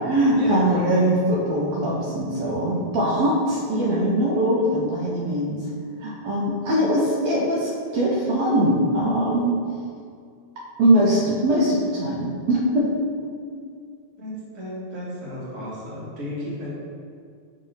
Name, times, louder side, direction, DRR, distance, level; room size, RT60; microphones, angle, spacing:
voice 1, 0.0-5.6 6.0-9.5 10.8-12.9 13.2-13.6, right 1 dB, 75° right, -5 dB, 1.8 m, -21 dB
voice 2, 14.2-16.7, left 1 dB, 40° right, -7 dB, 1.2 m, -34 dB
5.6 x 3.2 x 5.5 m, 2.2 s
omnidirectional pair, 3.4 m